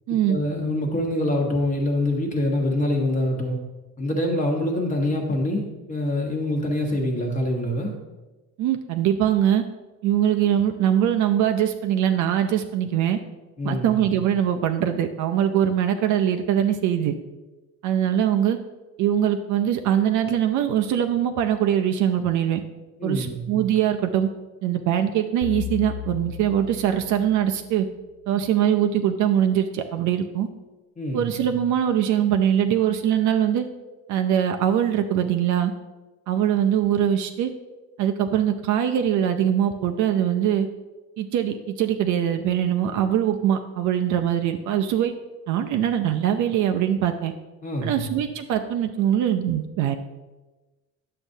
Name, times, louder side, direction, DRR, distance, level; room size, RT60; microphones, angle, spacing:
voice 1, 0.3-3.6 4.0-7.9 13.6-13.9 23.0-23.4 31.0-31.3 47.6-48.0, left 1 dB, 20° left, 1 dB, 1.1 m, -25 dB
voice 2, 8.6-9.6 10.0-13.2 13.6-17.1 17.8-18.6 19.0-22.6 23.0-24.3 24.6-27.9 28.3-30.5 31.1-33.6 34.1-35.7 36.3-37.5 38.0-40.7 41.2-45.1 45.5-47.3 47.8-50.0, right 10 dB, 55° right, 6 dB, 0.5 m, -22 dB
sound 1, 25.4-27.9, left 14 dB, 45° left, 0.6 m, -35 dB
9.8 x 7.5 x 2.7 m, 1.2 s
cardioid pair, 165°, 37 cm